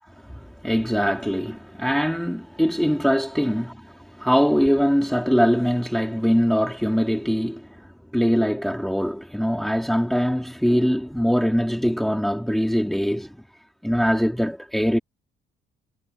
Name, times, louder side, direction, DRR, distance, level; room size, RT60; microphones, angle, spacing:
voice 1, 0.3-13.4 13.8-15.0, equal, ahead, 2.6 m, -22 dB
cardioid pair, 90°, 20 cm